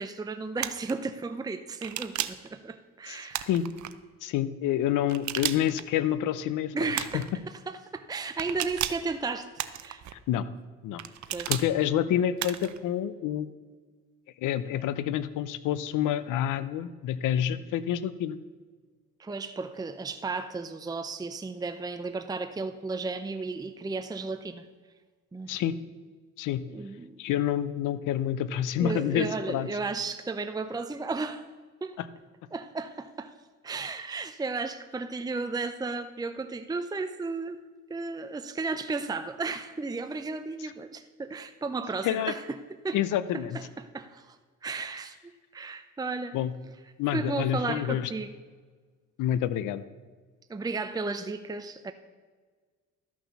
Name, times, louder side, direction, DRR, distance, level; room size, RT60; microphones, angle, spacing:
voice 1, 0.0-3.5 6.7-7.3 7.7-9.5 9.8-10.0 11.3-11.5 19.2-24.6 25.3-25.5 26.7-27.2 28.8-31.4 31.8-32.0 32.5-33.3 33.6-37.6 37.9-42.6 42.8-43.0 43.5-44.4 44.6-46.4 47.1-48.3 50.5-51.9, right 3 dB, 15° right, 9 dB, 0.6 m, -34 dB
sound 1, 0.6-0.9 1.8-2.5 3.3-3.9 5.1-5.8 6.9-7.3 8.4-9.1 9.6-10.1 11.0-11.7 12.4-12.8, right 12 dB, 70° right, 0.7 m, -33 dB
voice 2, 3.1-3.7 4.2-6.7 7.1-7.2 10.1-10.4 10.8-11.0 11.5-13.5 14.4-18.4 25.5-25.7 26.4-26.6 27.2-29.7 32.0-32.1 40.6-40.7 42.0-42.3 42.9-43.6 46.3-46.5 47.0-48.1 49.2-49.8, left 11 dB, 85° left, 15 dB, 0.7 m, -28 dB
13.0 x 6.2 x 6.9 m, 1.5 s
cardioid pair, 90°, 30 cm